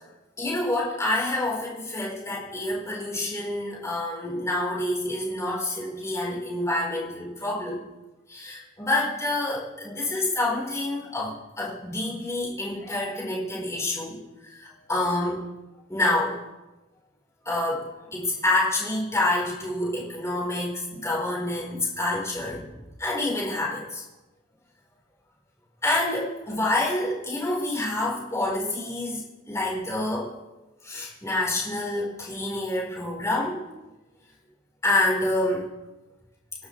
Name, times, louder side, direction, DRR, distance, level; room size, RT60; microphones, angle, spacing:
voice 1, 0.4-7.8 8.3-15.5 15.9-16.4 17.4-24.0 25.8-30.3 30.8-33.6 34.8-35.7, left 2 dB, 15° left, -4 dB, 4.3 m, -27 dB
25.5 x 12.0 x 3.3 m, 1.1 s
head